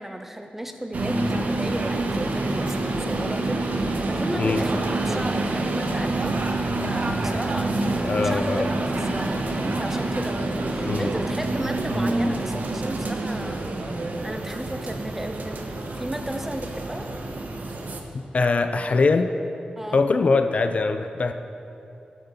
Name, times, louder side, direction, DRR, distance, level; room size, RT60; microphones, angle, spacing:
voice 1, 0.0-6.5 6.8-13.7 14.2-17.1 19.8-20.0, right 1 dB, 10° right, 5 dB, 0.6 m, -34 dB
sound 1, 0.9-18.0, right 2 dB, 60° right, 0.8 m, -27 dB
voice 2, 8.0-8.7 10.8-11.1 18.3-19.3 19.9-21.3, left 3 dB, 45° left, 8 dB, 0.3 m, -22 dB
12.5 x 7.6 x 4.0 m, 2.8 s
wide cardioid pair, 145°, 3 cm